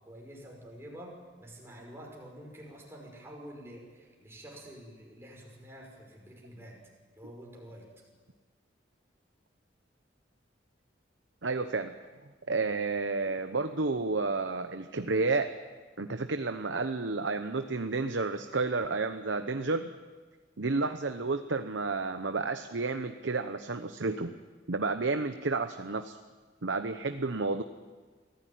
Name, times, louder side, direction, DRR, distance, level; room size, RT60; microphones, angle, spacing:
voice 1, 0.0-6.8 7.1-7.8, equal, 15° right, -1 dB, 5.5 m, -48 dB
voice 2, 11.4-11.9 12.5-15.5 16.0-19.9 20.6-24.4 24.7-26.2 26.6-27.6, right 3 dB, 80° right, 8 dB, 0.9 m, -31 dB
24.0 x 15.5 x 9.4 m, 1.4 s
head